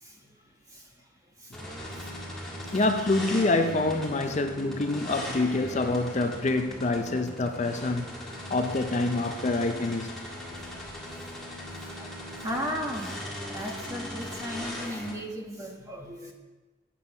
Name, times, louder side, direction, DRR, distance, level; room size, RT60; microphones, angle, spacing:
sound 1, 1.5-15.1, equal, ahead, 2.0 m, -39 dB
voice 1, 2.7-10.2, left 2 dB, 35° left, 0.5 m, -26 dB
voice 2, 12.4-13.2 13.5-16.3, equal, 15° right, 1.3 m, -35 dB
8.5 x 7.2 x 5.9 m
head